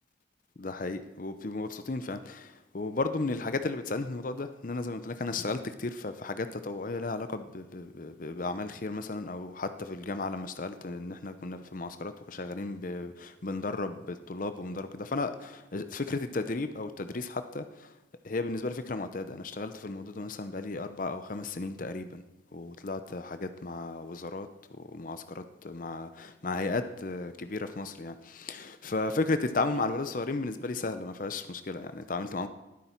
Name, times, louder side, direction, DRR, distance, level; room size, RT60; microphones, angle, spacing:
voice 1, 0.6-17.9 18.2-22.2 22.5-32.5, left 3 dB, 45° left, 10 dB, 0.6 m, -34 dB
19.0 x 9.9 x 4.5 m, 1.0 s
head